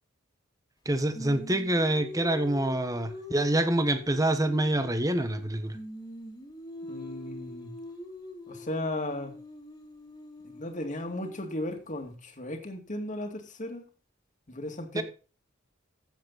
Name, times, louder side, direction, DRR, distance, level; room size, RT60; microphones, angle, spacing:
voice 1, 0.8-5.8 14.9-15.0, right 1 dB, 15° right, 1.2 m, -26 dB
Singing, 1.1-5.5 5.7-11.7, left 1 dB, 20° left, 2.5 m, -44 dB
voice 2, 6.9-7.7 8.5-9.4 10.4-13.8 14.5-15.0, left 1 dB, 40° left, 2.4 m, -35 dB
14.5 x 7.9 x 4.0 m
head